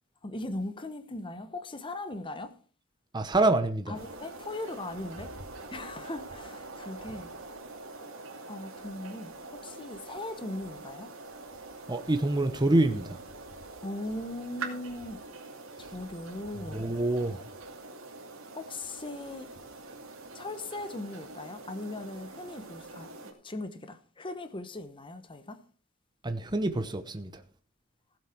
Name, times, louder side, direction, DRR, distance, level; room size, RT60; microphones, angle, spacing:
voice 1, 0.2-2.5 3.9-5.3 5.7-7.3 8.5-11.1 13.8-15.2 15.8-16.9 18.5-19.5 20.3-25.6, left 2 dB, 25° left, 0.9 m, -39 dB
voice 2, 3.1-3.9 11.9-13.2 16.7-17.4 26.2-27.3, right 2 dB, 20° right, 0.8 m, -26 dB
sound 1, 3.9-23.3, right 3 dB, 80° right, 2.5 m, -45 dB
16.0 x 7.5 x 4.5 m
head